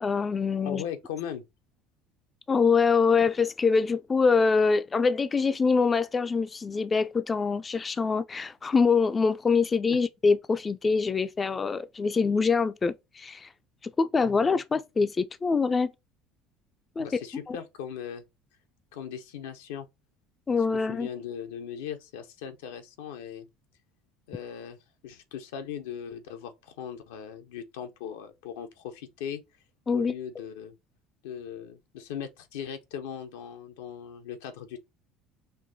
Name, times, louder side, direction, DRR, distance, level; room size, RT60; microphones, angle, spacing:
voice 1, 0.0-0.8 2.5-13.5 13.8-15.9 17.0-17.1 17.5-17.6 20.5-21.1 29.9-30.1, left 5 dB, 30° left, 0.3 m, -24 dB
voice 2, 0.6-1.4 9.9-10.0 17.0-18.2 18.9-19.9 20.7-23.5 24.3-29.4 29.9-30.7 31.2-34.8, left 8 dB, 75° left, 0.6 m, -39 dB
5.4 x 2.6 x 2.7 m
hypercardioid pair, 65°, 0 cm